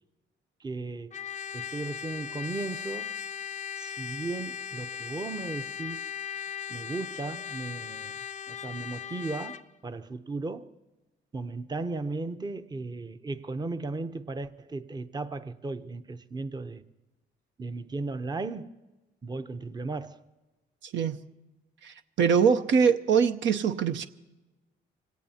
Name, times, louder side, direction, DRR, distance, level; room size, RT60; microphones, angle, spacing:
voice 1, 0.6-1.2 1.5-3.2 3.8-6.1 6.7-8.2 8.5-10.7 11.3-16.8 17.6-18.7 19.2-20.2, right 3 dB, 20° right, 0.7 m, -36 dB
Trumpet, 1.1-9.7, left 8 dB, 35° left, 0.5 m, -38 dB
voice 2, 20.8-21.2 21.8-24.1, right 6 dB, 70° right, 0.7 m, -23 dB
25.0 x 17.5 x 2.8 m
cardioid pair, 90°, 20 cm